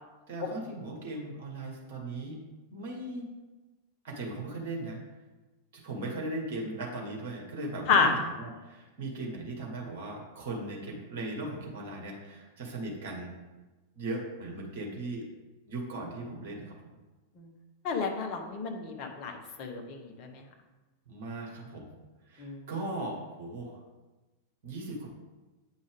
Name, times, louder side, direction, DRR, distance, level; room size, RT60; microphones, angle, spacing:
voice 1, 0.3-2.4 2.7-3.3 4.0-5.0 5.7-13.3 14.0-15.3 15.7-16.8 21.1-21.9 22.2-23.8 24.6-25.2, right 2 dB, 50° right, 0 dB, 1.7 m, -38 dB
voice 2, 17.8-20.3 22.4-22.6, left 5 dB, 40° left, 3 dB, 1.2 m, -29 dB
8.5 x 5.1 x 3.5 m, 1.1 s
figure-of-eight pair, 90°, 0 cm